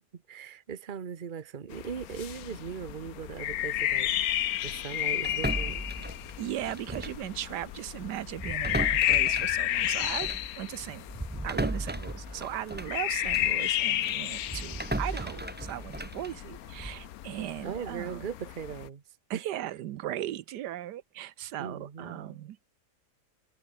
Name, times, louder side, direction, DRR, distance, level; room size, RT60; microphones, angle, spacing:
voice 1, 0.1-4.1 4.6-5.8 17.6-19.0 19.3-19.4 21.6-22.4, right 7 dB, 35° right, 1.1 m, -39 dB
sound 1, 1.7-18.9, left 13 dB, 65° left, 1.1 m, -32 dB
sound 2, 5.2-7.3 7.6-7.8 8.3-13.6 14.0-17.1, right 1 dB, 10° right, 0.8 m, -36 dB
voice 2, 6.4-11.0 11.4-18.2 19.3-22.6, right 12 dB, 80° right, 1.3 m, -37 dB
omnidirectional pair, 1.8 m